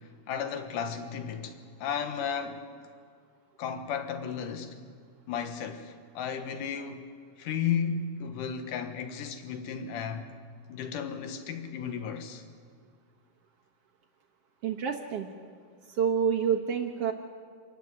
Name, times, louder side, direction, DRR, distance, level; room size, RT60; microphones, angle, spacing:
voice 1, 0.3-2.7 3.6-4.8 5.3-7.0 7.4-10.3 10.7-12.4, left 7 dB, 65° left, 2.7 m, -34 dB
voice 2, 14.6-15.3 16.0-17.1, right 7 dB, 60° right, 1.6 m, -27 dB
26.5 x 13.5 x 9.6 m
omnidirectional pair, 4.4 m